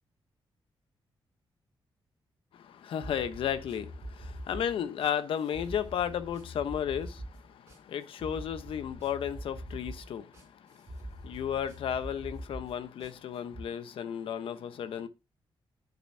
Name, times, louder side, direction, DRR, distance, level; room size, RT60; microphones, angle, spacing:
voice 1, 2.5-15.1, left 9 dB, 85° left, 0.9 m, -34 dB
sound 1, 3.0-13.7, equal, 25° right, 6.8 m, -44 dB
10.5 x 8.0 x 2.7 m
wide cardioid pair, 170°, 9 cm